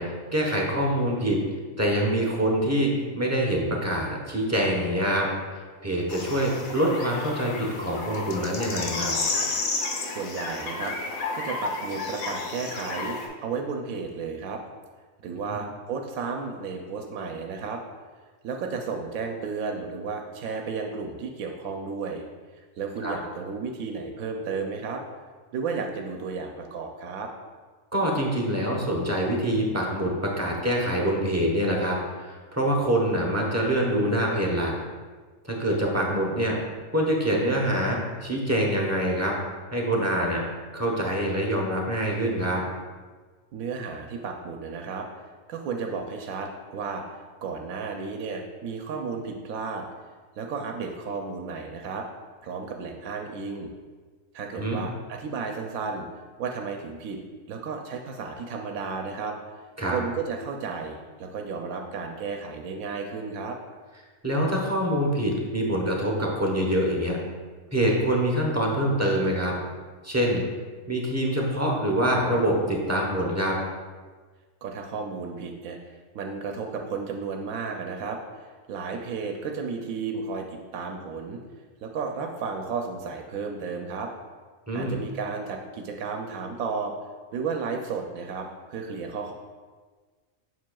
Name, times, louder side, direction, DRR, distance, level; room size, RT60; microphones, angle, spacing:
voice 1, 0.0-1.4 1.8-5.3 5.5-9.1 15.5-15.6 23.0-23.1 27.9-34.7 35.4-36.6 36.9-39.3 39.7-40.4 40.7-42.6 54.5-54.8 59.8-60.0 64.2-67.2 67.7-69.5 70.0-70.4 70.9-73.6 84.7-85.0, right 1 dB, 15° right, -2 dB, 0.7 m, -25 dB
sound 1, 6.1-13.3, left 3 dB, 85° left, 1.2 m, -31 dB
voice 2, 10.1-10.9 11.3-14.6 15.2-17.8 18.4-22.3 22.8-25.0 25.5-27.3 43.5-47.0 47.4-49.9 50.4-52.1 52.4-53.7 54.3-56.1 56.4-57.2 57.5-59.4 59.9-63.6 74.6-81.4 81.8-84.1 84.7-86.9 87.3-89.3, right 5 dB, 85° right, 3 dB, 1.0 m, -33 dB
7.4 x 5.9 x 2.2 m, 1.4 s
omnidirectional pair, 1.4 m